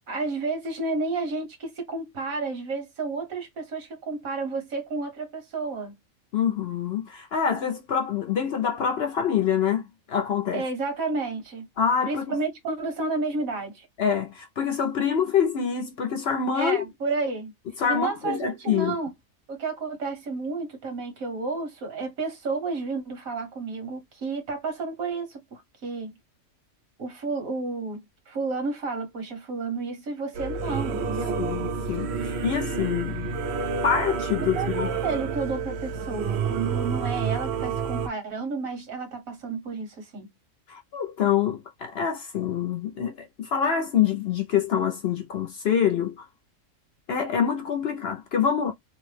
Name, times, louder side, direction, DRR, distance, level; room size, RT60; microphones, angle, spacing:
voice 1, 0.1-5.9 10.5-11.7 12.1-13.9 16.5-17.5 17.9-19.1 19.5-26.1 27.0-31.4 34.5-40.3, right 3 dB, 75° right, 1.6 m, -31 dB
voice 2, 6.3-10.6 11.8-12.4 14.0-16.8 17.8-19.0 31.4-33.3 33.8-34.9 40.7-46.2 47.1-48.7, left 7 dB, 60° left, 0.7 m, -26 dB
Singing / Musical instrument, 30.3-38.1, right 5 dB, 60° right, 0.7 m, -29 dB
3.2 x 2.1 x 3.2 m
omnidirectional pair, 1.4 m